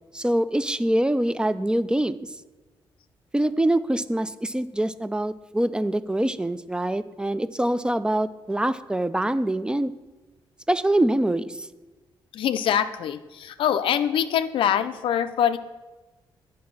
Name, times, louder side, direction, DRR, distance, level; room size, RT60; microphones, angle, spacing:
voice 1, 0.1-2.2 3.3-9.9 10.7-11.7, right 1 dB, 10° right, 15 dB, 0.3 m, -24 dB
voice 2, 12.3-15.6, left 9 dB, 75° left, 11 dB, 0.4 m, -24 dB
8.3 x 4.7 x 5.9 m, 1.1 s
cardioid pair, 85°, 9 cm